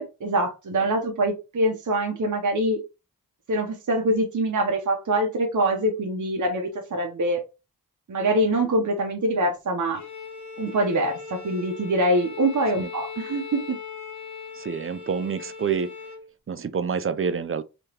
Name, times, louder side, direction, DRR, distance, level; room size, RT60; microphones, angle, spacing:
voice 1, 0.0-2.8 3.5-7.4 8.1-10.0 10.6-13.8, right 1 dB, 55° right, 0.8 m, -24 dB
Bowed string instrument, 9.9-16.3, left 5 dB, 55° left, 1.0 m, -39 dB
voice 2, 14.5-15.9 16.5-17.6, right 6 dB, 40° right, 0.4 m, -27 dB
3.5 x 2.9 x 2.9 m
wide cardioid pair, 65°, 36 cm